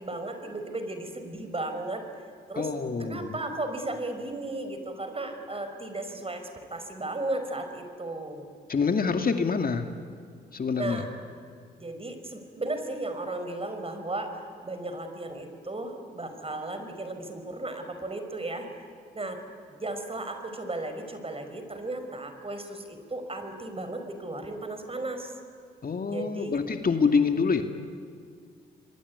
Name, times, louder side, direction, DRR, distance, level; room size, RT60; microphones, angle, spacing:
voice 1, 0.0-2.0 2.5-2.7 3.0-8.5 10.8-11.1 11.8-18.9 19.1-19.4 19.8-25.3 26.1-26.6, right 2 dB, 30° right, 7 dB, 5.4 m, -35 dB
voice 2, 2.6-3.3 8.7-9.9 10.5-11.0 25.8-27.6, left 5 dB, 50° left, 6 dB, 2.3 m, -26 dB
27.0 x 22.5 x 9.7 m, 2.2 s
supercardioid pair, 55°, 20 cm